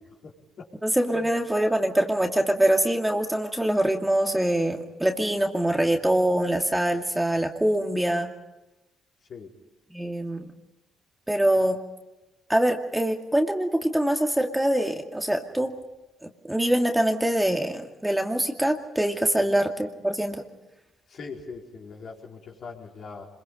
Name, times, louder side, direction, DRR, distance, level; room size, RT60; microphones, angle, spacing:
voice 1, 0.8-8.3 9.9-10.5 11.3-11.8 12.5-15.7 16.2-20.4, right 1 dB, 10° right, 3 dB, 2.3 m, -24 dB
voice 2, 21.1-23.3, left 5 dB, 60° left, -2 dB, 4.7 m, -41 dB
26.0 x 22.0 x 5.4 m, 1.0 s
supercardioid pair, 55°, 0 cm